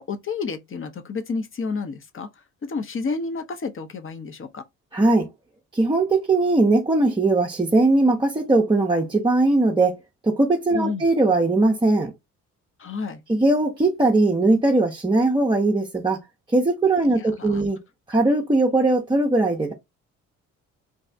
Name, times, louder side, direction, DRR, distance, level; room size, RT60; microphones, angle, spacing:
voice 1, 0.0-2.3 2.6-4.6 10.7-11.0 12.8-13.2 17.1-17.7, left 4 dB, 30° left, 0.7 m, -30 dB
voice 2, 4.9-5.3 5.7-10.0 10.2-12.1 13.3-16.2 16.5-17.8 18.1-19.7, right 2 dB, 10° right, 0.6 m, -20 dB
2.7 x 2.3 x 3.3 m
hypercardioid pair, 45°, 39 cm